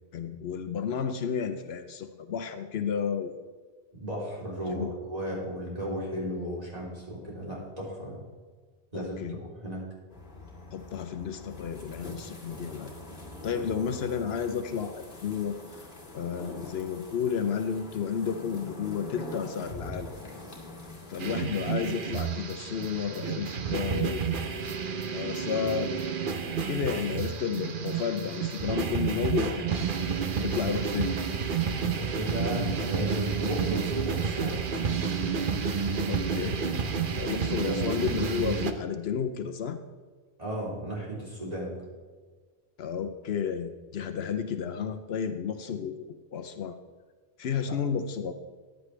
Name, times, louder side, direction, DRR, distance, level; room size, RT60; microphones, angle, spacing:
voice 1, 0.1-3.3 4.7-4.9 8.9-9.4 10.7-12.9 13.4-15.6 16.1-20.1 21.1-24.4 25.1-26.0 26.7-29.7 30.4-31.1 36.1-36.6 37.2-39.8 42.8-46.8 47.4-48.3, left 7 dB, 80° left, 9 dB, 0.9 m, -32 dB
voice 2, 3.9-8.2 8.9-9.8 13.6-13.7 31.7-34.6 37.4-37.8 40.4-41.8, equal, 40° right, -5 dB, 3.6 m, -35 dB
sound 1, 10.1-21.4, left 2 dB, 50° left, 2.4 m, -44 dB
sound 2, 21.2-38.7, right 6 dB, 55° right, 1.0 m, -30 dB
14.5 x 10.0 x 3.3 m, 1.5 s
omnidirectional pair, 1.0 m